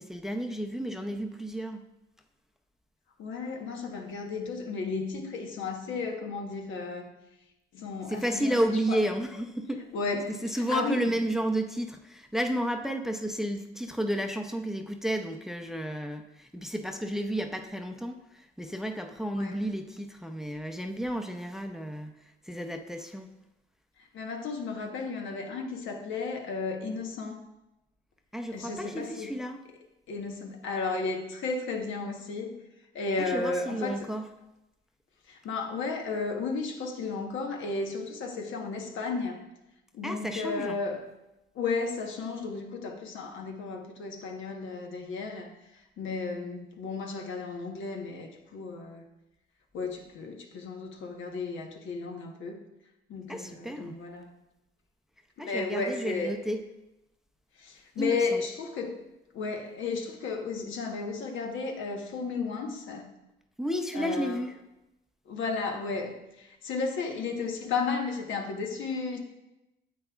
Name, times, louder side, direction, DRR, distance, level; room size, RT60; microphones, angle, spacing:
voice 1, 0.0-1.8 8.1-9.8 10.4-22.1 22.5-23.3 28.3-29.6 33.3-34.3 40.0-40.8 53.3-54.0 55.4-56.6 58.0-58.4 63.6-64.6, right 1 dB, ahead, 5 dB, 0.5 m, -32 dB
voice 2, 3.2-7.2 7.7-9.0 9.9-11.2 19.3-19.6 24.1-27.4 28.5-29.4 30.1-32.6 32.9-34.1 35.3-39.5 39.9-41.1 41.5-49.0 49.7-52.6 53.1-54.3 55.4-56.4 57.6-59.0 59.3-63.1 63.9-64.4 65.3-69.2, left 4 dB, 75° left, 3 dB, 1.1 m, -34 dB
9.4 x 7.8 x 2.4 m, 0.95 s
cardioid pair, 90°, 20 cm